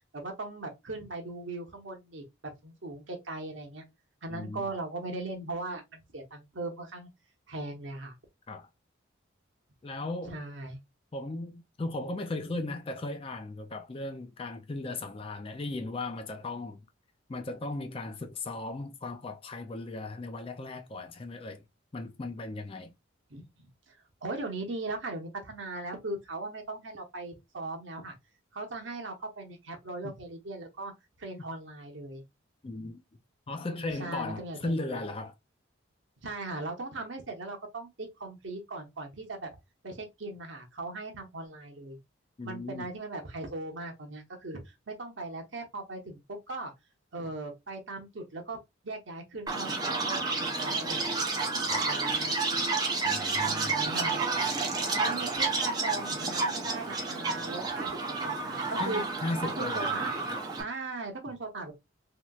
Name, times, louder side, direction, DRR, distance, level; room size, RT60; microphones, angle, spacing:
voice 1, 0.1-2.2 2.6-3.8 4.2-7.1 7.5-8.1 10.3-10.8 23.3-23.9 24.2-28.1 28.5-30.9 31.2-32.2 34.0-35.0 36.2-39.5 39.8-42.0 42.4-44.6 44.9-46.7 47.1-48.6 48.8-51.2 51.8-52.3 53.4-54.3 55.0-58.0 58.2-59.0 59.4-60.1 60.6-61.7, right 2 dB, 65° right, 0.9 m, -39 dB
voice 2, 4.3-4.7 8.5-8.7 9.8-10.4 11.1-16.8 17.3-21.6 21.9-22.9 30.0-30.2 32.6-33.0 33.5-35.3 42.4-42.9 51.7-51.9 53.0-53.8 58.8-60.4, left 2 dB, 25° left, 0.3 m, -37 dB
Chirp tweet, 49.5-60.6, right 3 dB, 20° right, 0.6 m, -30 dB
3.0 x 2.9 x 2.3 m
head